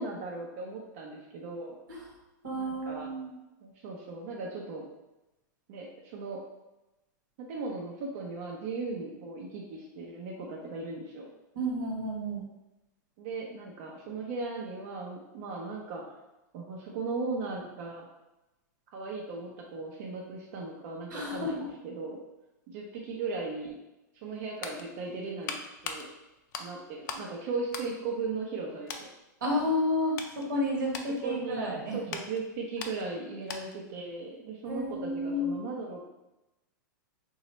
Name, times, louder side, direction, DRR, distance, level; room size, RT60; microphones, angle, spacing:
voice 1, 0.0-1.8 2.5-3.1 3.6-4.8 5.7-6.4 7.5-11.3 13.2-16.0 16.5-18.1 18.9-22.2 22.7-23.7 24.2-25.6 25.8-26.1 26.6-29.1 31.2-36.0, right 3 dB, 55° right, -2 dB, 0.6 m, -37 dB
voice 2, 2.4-3.3 11.5-12.4 21.1-21.7 29.4-32.0 34.7-35.6, left 1 dB, 90° right, -1 dB, 1.2 m, -31 dB
sound 1, 24.2-27.3 27.6-28.6 28.9-29.1 29.7-33.9 34.2-34.4, left 5 dB, 65° left, 0.5 m, -42 dB
3.0 x 2.3 x 4.2 m, 0.98 s
supercardioid pair, 140°, 10 cm